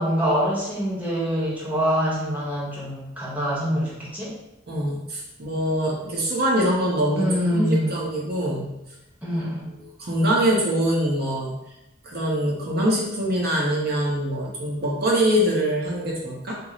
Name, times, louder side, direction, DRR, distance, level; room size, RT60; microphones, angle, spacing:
voice 1, 0.0-4.3 7.2-8.0 9.2-9.6, equal, 10° right, -7 dB, 1.0 m, -25 dB
voice 2, 4.7-8.7 10.0-11.5 12.0-16.6, equal, 50° right, -4 dB, 0.8 m, -24 dB
4.4 x 2.0 x 3.9 m, 0.90 s
head